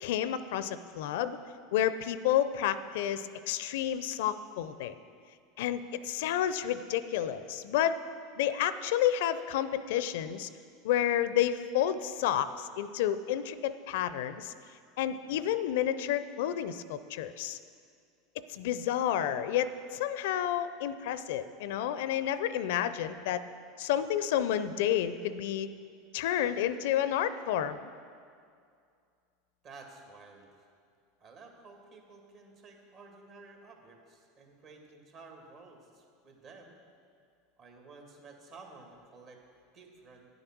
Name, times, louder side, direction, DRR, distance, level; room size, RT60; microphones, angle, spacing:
voice 1, 0.0-1.4 1.7-4.9 5.6-8.0 8.4-10.5 10.8-14.5 15.0-17.6 18.5-23.4 23.8-25.7 26.1-27.9, left 10 dB, 70° left, 13 dB, 0.4 m, -30 dB
voice 2, 29.6-30.5 31.2-36.8 37.6-39.4 39.7-40.3, right 3 dB, 50° right, 2 dB, 2.0 m, -53 dB
9.8 x 7.9 x 6.0 m, 2.3 s
hypercardioid pair, 90°, 0 cm